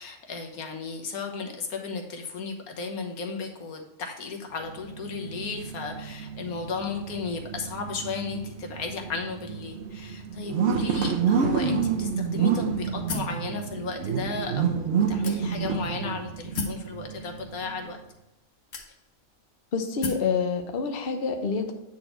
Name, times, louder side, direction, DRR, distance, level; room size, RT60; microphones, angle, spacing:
voice 1, 0.0-18.0, left 4 dB, 85° left, 3 dB, 1.6 m, -35 dB
sound 1, 4.6-18.0, right 6 dB, 60° right, 0.9 m, -29 dB
sound 2, 13.1-13.4 14.2-14.3 15.2-15.8 16.5-16.9 17.8-17.9 18.7-19.3 20.0-20.3, left 4 dB, 60° left, 1.4 m, -33 dB
voice 2, 19.7-21.7, left 5 dB, 45° left, 5 dB, 1.0 m, -27 dB
9.2 x 4.3 x 4.4 m, 0.93 s
omnidirectional pair, 1.5 m